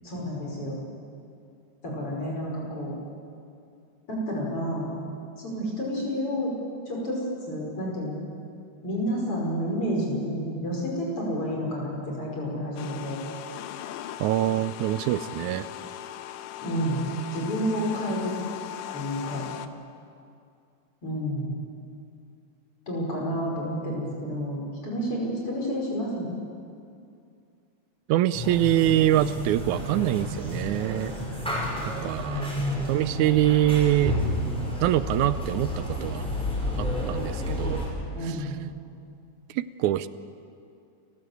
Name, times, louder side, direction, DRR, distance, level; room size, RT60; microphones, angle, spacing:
voice 1, 0.0-0.8 1.8-3.0 4.1-4.9 5.4-6.5 6.9-8.2 8.8-13.2 16.6-18.3 18.9-19.5 21.0-21.6 22.9-26.3 32.3-32.9 38.1-38.6, equal, 45° left, -2 dB, 6.1 m, -30 dB
sound 1, 12.8-19.7, left 12 dB, 85° left, 2.2 m, -39 dB
voice 2, 14.2-15.7 28.1-31.1 32.0-32.5 32.9-34.2 34.8-36.3 36.8-37.8 38.3-38.4 39.5-40.1, right 13 dB, 80° right, 14 dB, 2.0 m, -24 dB
sound 2, 28.3-37.9, left 1 dB, ahead, 5.1 m, -31 dB
29.0 x 14.0 x 8.2 m, 2.4 s
omnidirectional pair, 3.4 m